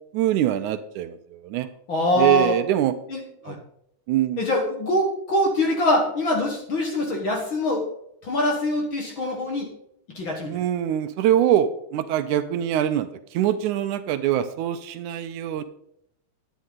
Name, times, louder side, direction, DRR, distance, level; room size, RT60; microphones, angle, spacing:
voice 1, 0.1-1.7 2.2-2.9 3.5-3.6 4.1-4.4 10.5-13.1 13.3-15.6, right 11 dB, 80° right, 10 dB, 2.1 m, -23 dB
voice 2, 1.9-2.6 3.1-3.6 4.4-7.9 8.2-9.7 10.1-10.6, left 1 dB, 50° left, 1 dB, 1.8 m, -23 dB
10.5 x 9.8 x 3.9 m, 0.75 s
omnidirectional pair, 3.6 m